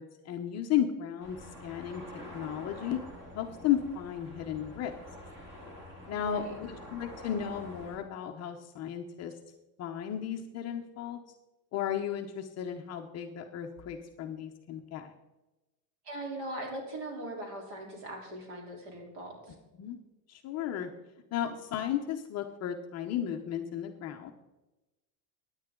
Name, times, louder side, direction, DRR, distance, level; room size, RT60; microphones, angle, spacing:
voice 1, 0.0-2.0 2.3-3.0 3.3-5.0 6.1-9.3 9.8-11.2 11.7-15.1 19.8-20.0 20.3-20.9 21.3-24.3, left 10 dB, 30° left, 3 dB, 0.7 m, -34 dB
sound 1, 1.2-8.0, left 1 dB, 20° right, 3.0 m, -47 dB
voice 2, 6.1-6.5 16.0-19.5, right 1 dB, 45° right, 1 dB, 3.6 m, -40 dB
15.5 x 9.8 x 3.7 m, 1.0 s
cardioid pair, 160°, 49 cm